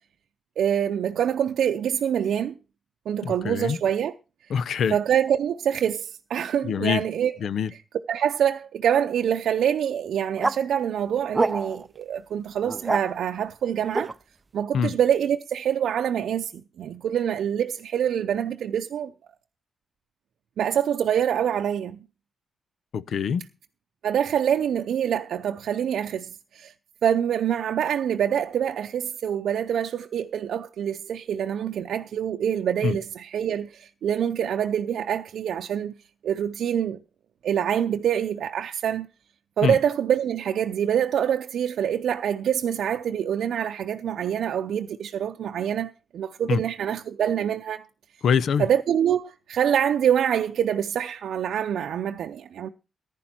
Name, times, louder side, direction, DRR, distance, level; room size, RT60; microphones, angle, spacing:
voice 1, 0.6-2.5 3.1-4.1 4.9-7.4 8.1-14.1 14.5-19.1 20.6-22.0 24.0-26.7 27.0-35.9 36.2-37.0 37.4-39.1 39.6-47.8 48.6-52.7, right 9 dB, 75° right, 0.6 m, -25 dB
voice 2, 3.2-3.8 4.5-5.0 6.6-7.0 7.4-7.7 14.7-14.9 22.9-23.4 32.8-33.0 39.6-39.8 46.5-46.6 48.2-48.7, left 7 dB, 70° left, 0.7 m, -24 dB
sound 1, 10.4-10.6 11.3-11.9 12.6-13.0 13.9-14.1, right 3 dB, 20° right, 0.6 m, -25 dB
14.5 x 10.5 x 4.4 m
cardioid pair, 105°, 0 cm